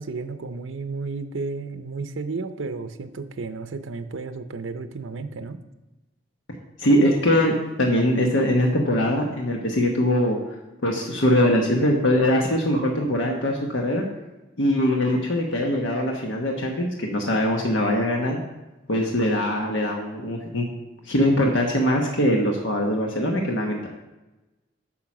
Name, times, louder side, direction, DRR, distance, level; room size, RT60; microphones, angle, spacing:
voice 1, 0.0-5.6, right 3 dB, 90° right, 9 dB, 0.6 m, -32 dB
voice 2, 6.8-10.4 10.8-14.0 14.6-18.4 18.9-20.7 21.0-23.9, left 1 dB, 75° left, 1 dB, 1.1 m, -22 dB
8.7 x 5.8 x 6.0 m, 1.1 s
head